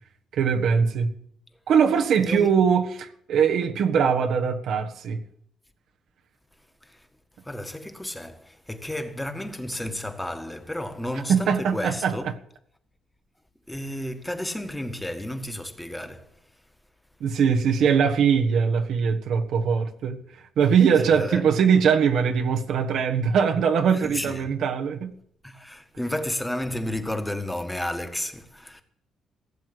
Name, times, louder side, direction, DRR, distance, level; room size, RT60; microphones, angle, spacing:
voice 1, 0.3-1.1 1.7-5.2 11.3-12.3 17.2-25.1, right 6 dB, 75° right, 1.4 m, -22 dB
voice 2, 2.2-2.7 6.8-7.1 7.4-12.3 13.7-16.3 21.0-21.4 23.9-24.5 25.4-28.8, left 1 dB, 5° left, 1.7 m, -32 dB
16.5 x 7.6 x 7.9 m
cardioid pair, 90°, 0 cm